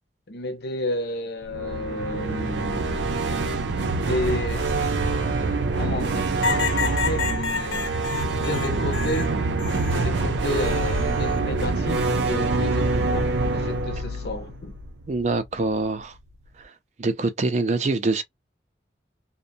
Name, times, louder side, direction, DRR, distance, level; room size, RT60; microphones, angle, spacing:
voice 1, 0.3-3.0 3.8-4.7 5.8-7.9 8.4-9.3 10.0-14.7, left 2 dB, 60° left, 0.6 m, -31 dB
sound 1, 1.4-15.5, right 3 dB, 85° right, 0.5 m, -25 dB
sound 2, 6.4-10.1 10.6-11.4 12.8-13.2, left 6 dB, 90° left, 0.8 m, -30 dB
voice 2, 15.1-16.2 16.6-16.7 17.0-18.2, right 3 dB, 40° right, 0.4 m, -24 dB
2.6 x 2.1 x 2.6 m
head